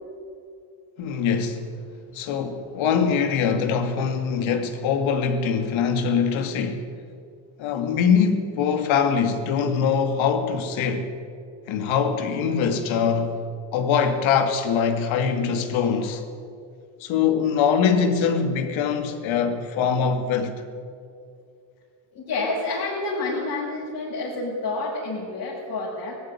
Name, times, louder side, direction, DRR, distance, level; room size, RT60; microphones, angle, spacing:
voice 1, 1.0-1.7 2.1-6.9 7.6-11.1 11.7-13.4 13.7-16.2 17.0-20.6, left 6 dB, 70° left, 2.6 m, -23 dB
voice 2, 22.1-26.1, left 2 dB, 45° left, 6.7 m, -28 dB
19.0 x 15.0 x 10.0 m
supercardioid pair, 95°, 48 cm